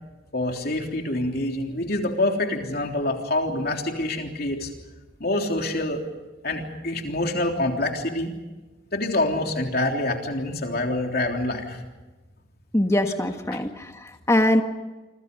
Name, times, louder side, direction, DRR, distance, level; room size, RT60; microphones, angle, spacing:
voice 1, 0.3-4.7 5.2-6.1 6.4-8.3 8.9-11.8 13.5-13.6, left 1 dB, 50° left, 3 dB, 3.4 m, -26 dB
voice 2, 12.7-14.6, left 1 dB, 15° left, 6 dB, 1.5 m, -22 dB
28.0 x 25.5 x 5.4 m, 1.2 s
head